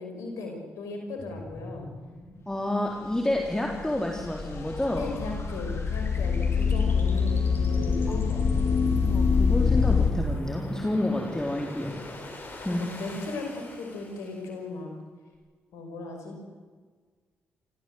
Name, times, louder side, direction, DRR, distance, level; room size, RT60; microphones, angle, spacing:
voice 1, 0.0-1.9 4.9-8.8 12.7-14.9 15.7-16.4, left 2 dB, 75° left, 3 dB, 5.6 m, -37 dB
sound 1, 1.2-14.6, left 2 dB, 40° left, 7.1 m, -42 dB
voice 2, 2.5-5.1 8.1-8.2 9.0-12.0 12.6-12.9, left 1 dB, 10° left, 0 dB, 4.0 m, -29 dB
sound 2, 3.3-10.1, left 5 dB, 55° left, 4.0 m, -25 dB
29.0 x 15.5 x 8.0 m, 1.5 s
hypercardioid pair, 45°, 5 cm